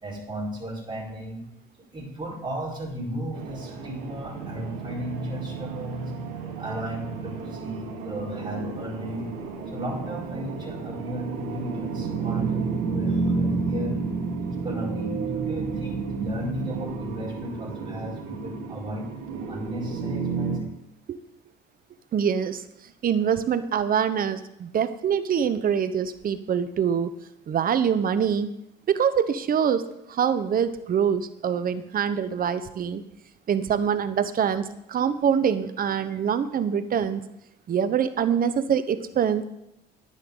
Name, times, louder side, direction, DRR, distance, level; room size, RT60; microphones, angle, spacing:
voice 1, 0.0-1.4 1.9-6.1 6.6-9.3 9.7-14.0 14.5-19.0 19.5-20.6, equal, 20° right, -3 dB, 4.5 m, -34 dB
sound 1, 3.3-20.6, right 4 dB, 80° right, 2.2 m, -31 dB
voice 2, 22.1-22.6 23.0-27.1 27.5-28.5 28.9-29.8 30.1-33.0 33.5-37.2 37.7-39.4, right 8 dB, 45° right, 12 dB, 0.9 m, -24 dB
10.5 x 9.6 x 3.9 m, 0.83 s
supercardioid pair, 80°, 21 cm